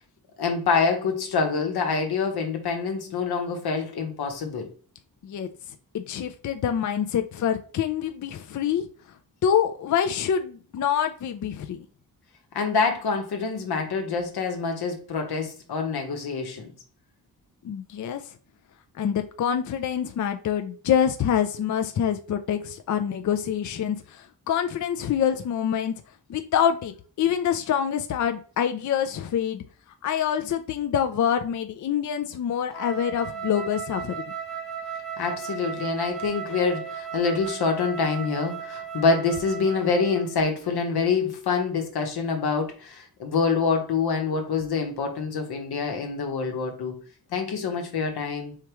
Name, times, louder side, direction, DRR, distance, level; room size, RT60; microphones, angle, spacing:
voice 1, 0.4-4.7 12.5-16.7 35.2-47.0 47.3-48.5, left 5 dB, 85° left, 1.1 m, -26 dB
voice 2, 5.9-8.8 9.4-11.8 17.6-18.2 19.0-25.9 26.3-29.6 30.0-34.1, left 9 dB, 55° left, 0.4 m, -26 dB
Wind instrument woodwind instrument, 32.7-40.4, right 7 dB, ahead, 0.8 m, -36 dB
4.6 x 3.5 x 3.0 m
wide cardioid pair, 115°, 37 cm